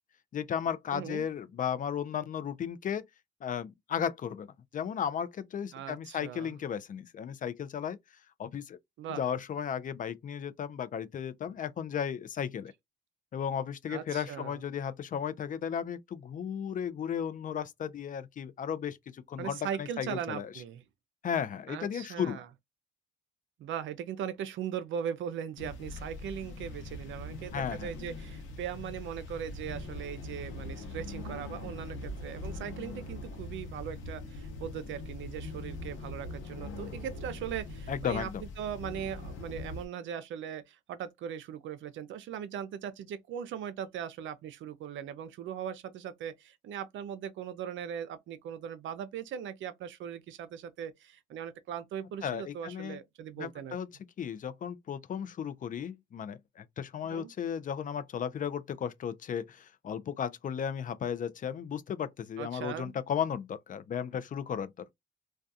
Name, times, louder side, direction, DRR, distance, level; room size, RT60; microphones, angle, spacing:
voice 1, 0.3-3.1 3.4-4.5 4.7-8.0 8.4-8.8 9.1-12.7 13.3-20.5 21.2-22.4 27.5-27.9 37.9-38.4 52.2-53.0 53.4-53.9 54.2-64.7, left 8 dB, 40° left, 0.4 m, -35 dB
voice 2, 0.9-1.2 5.7-6.5 9.0-9.2 13.9-14.6 19.4-20.8 21.7-22.5 23.6-38.3 38.6-53.8 57.1-57.3 62.4-62.9, right 9 dB, 75° right, 0.5 m, -39 dB
sound 1, 25.6-39.9, left 2 dB, 80° left, 0.8 m, -42 dB
2.3 x 2.2 x 2.6 m
cardioid pair, 90°, 20 cm